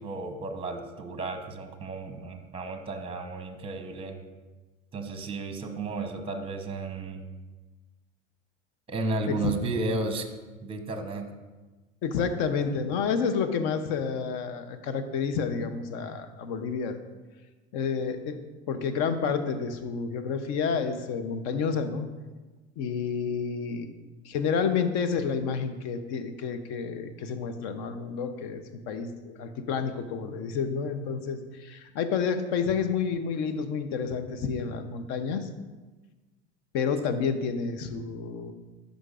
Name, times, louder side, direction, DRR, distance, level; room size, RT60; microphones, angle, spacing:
voice 1, 0.0-4.2 4.9-7.2 8.9-10.3 10.6-11.3, right 2 dB, 15° right, 7 dB, 0.8 m, -33 dB
voice 2, 12.0-17.0 17.7-18.4 18.7-22.1 22.8-23.9 24.2-28.6 28.9-35.5 36.7-38.5, left 6 dB, 55° left, 10 dB, 0.7 m, -29 dB
11.0 x 5.2 x 2.5 m, 1.2 s
hypercardioid pair, 80°, 33 cm